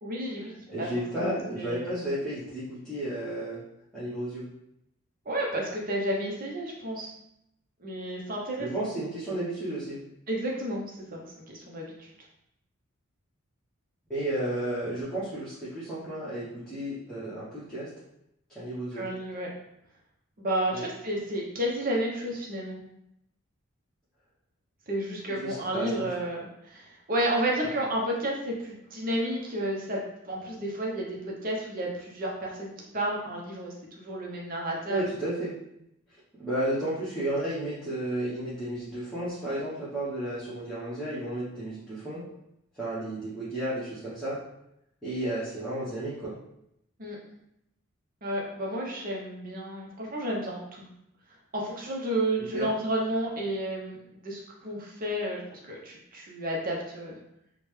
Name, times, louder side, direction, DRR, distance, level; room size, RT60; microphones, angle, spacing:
voice 1, 0.0-2.0 5.3-7.1 7.8-8.9 10.3-10.9 11.1-12.1 18.9-19.5 20.4-22.8 24.9-35.0 47.0-47.2 48.2-50.8 51.5-54.0 54.2-57.2, right 1 dB, 40° right, -2 dB, 0.7 m, -31 dB
voice 2, 0.7-3.6 3.9-4.5 8.6-10.0 14.1-17.9 18.5-19.1 20.7-20.8 25.3-26.1 34.9-35.5 36.4-42.3 42.7-44.4 45.0-46.3 52.5-52.7, right 1 dB, ahead, -13 dB, 0.8 m, -32 dB
3.6 x 2.2 x 3.1 m, 0.79 s
head